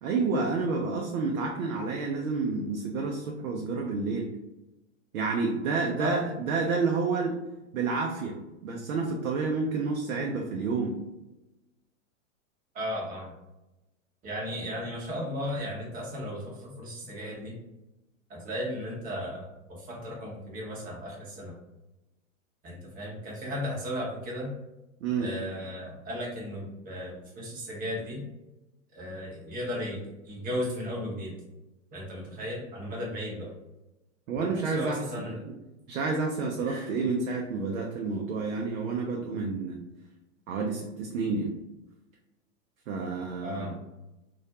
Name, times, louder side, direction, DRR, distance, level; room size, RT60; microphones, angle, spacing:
voice 1, 0.0-4.3 5.1-7.4 7.7-8.4 8.6-11.0 25.0-25.3 34.3-35.2 35.9-39.8 40.5-41.5 42.9-43.7, right 4 dB, 75° right, 0 dB, 0.5 m, -29 dB
voice 2, 12.7-13.3 14.2-17.6 18.3-21.5 22.6-24.5 25.2-28.2 28.9-31.3 31.9-33.5 34.4-35.4 36.6-36.9 43.4-43.7, equal, 20° right, -3 dB, 0.8 m, -35 dB
2.4 x 2.0 x 2.8 m, 0.99 s
hypercardioid pair, 120°, 40 cm